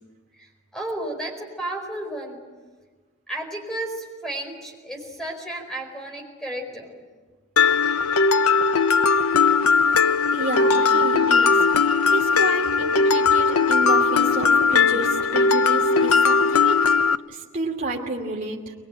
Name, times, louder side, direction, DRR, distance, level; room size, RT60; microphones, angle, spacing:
voice 1, 0.4-2.4 3.3-7.1, right 1 dB, 5° left, 1 dB, 4.8 m, -33 dB
Mallet percussion, 7.6-17.1, left 5 dB, 85° left, 0.7 m, -19 dB
voice 2, 10.3-11.6 11.9-16.8 17.3-18.7, right 2 dB, 40° right, -2 dB, 2.7 m, -30 dB
22.5 x 22.5 x 9.2 m, 1.4 s
head